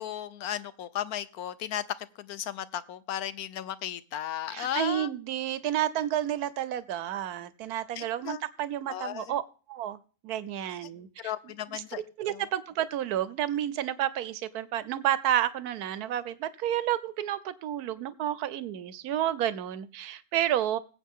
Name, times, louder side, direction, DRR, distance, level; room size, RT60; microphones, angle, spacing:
voice 1, 0.0-5.1 8.0-8.4 8.9-9.4 11.2-12.0 12.3-12.4, left 11 dB, 80° left, 16 dB, 1.3 m, -35 dB
voice 2, 4.5-9.4 9.7-10.0 10.2-11.3 11.7-11.8 12.2-20.8, right 11 dB, 85° right, 16 dB, 1.2 m, -30 dB
20.5 x 8.2 x 3.7 m, 0.40 s
omnidirectional pair, 1.6 m